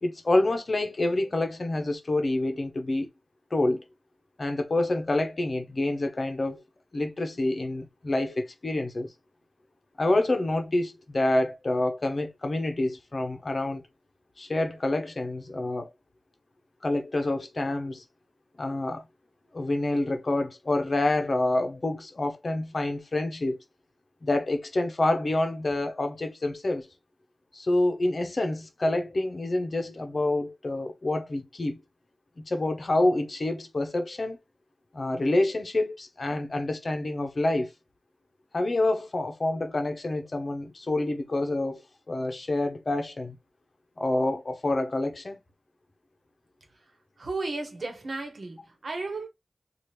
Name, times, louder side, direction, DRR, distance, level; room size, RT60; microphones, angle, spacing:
voice 1, 0.0-3.1 3.5-3.8 4.4-6.6 6.9-9.1 10.0-13.9 14.4-15.9 16.8-18.0 18.6-19.0 19.5-23.6 24.2-26.9 27.5-31.8 32.4-34.4 34.9-37.7 38.5-43.4 44.0-45.4, left 2 dB, 55° left, 0.7 m, -27 dB
voice 2, 47.2-49.3, right 3 dB, 70° right, 1.1 m, -34 dB
2.9 x 2.4 x 3.2 m
cardioid pair, 40°, 0 cm